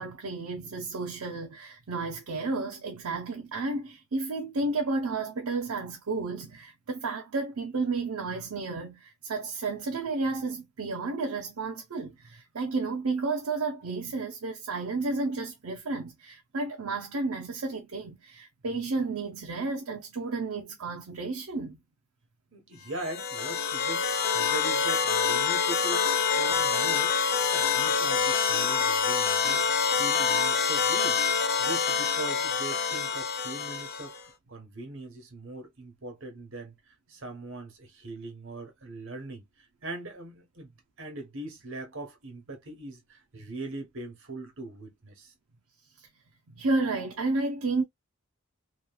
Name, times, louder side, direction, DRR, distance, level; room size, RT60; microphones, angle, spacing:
voice 1, 0.0-21.8 46.0-46.1 46.5-47.8, right 3 dB, 85° right, 0.6 m, -32 dB
voice 2, 22.5-27.2 27.5-36.7 37.1-39.5 39.8-40.7 41.0-45.3, right 2 dB, 60° right, 1.1 m, -41 dB
sound 1, 23.0-34.2, left 6 dB, 45° left, 0.4 m, -26 dB
3.0 x 2.4 x 2.2 m
head